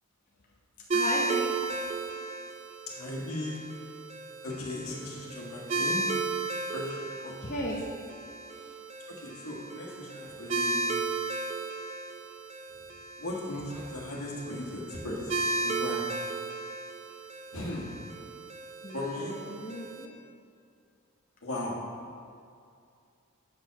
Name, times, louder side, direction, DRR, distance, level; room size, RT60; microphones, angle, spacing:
voice 1, 0.9-1.5 7.4-7.8 18.8-20.1, equal, 35° left, -4 dB, 0.7 m, -35 dB
sound 1, 0.9-20.0, right 3 dB, 30° right, 0.4 m, -35 dB
voice 2, 2.9-3.6 4.4-6.0 6.7-7.3 8.5-8.7 9.2-10.8 13.2-16.0 17.5-18.1 18.9-19.3 21.4-21.8, left 1 dB, 90° left, -4 dB, 1.5 m, -37 dB
7.7 x 4.6 x 5.8 m, 2.4 s
head